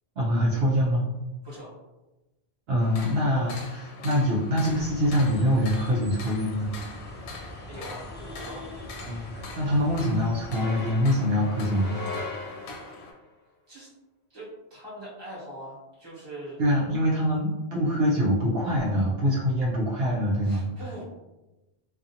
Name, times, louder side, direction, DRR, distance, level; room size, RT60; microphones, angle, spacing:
voice 1, 0.2-1.0 2.7-6.7 9.0-12.0 16.6-20.6, equal, 70° right, -5 dB, 0.8 m, -24 dB
voice 2, 1.4-1.8 7.7-8.7 13.7-13.9 14.3-16.6 20.4-21.0, right 1 dB, 25° right, -8 dB, 1.1 m, -42 dB
sound 1, 2.8-13.1, left 3 dB, 80° left, 0.8 m, -43 dB
sound 2, 4.6-10.9, left 1 dB, 20° left, 0.3 m, -42 dB
sound 3, 10.5-13.1, left 3 dB, 50° left, 0.9 m, -38 dB
2.5 x 2.4 x 2.7 m, 1.0 s
omnidirectional pair, 1.1 m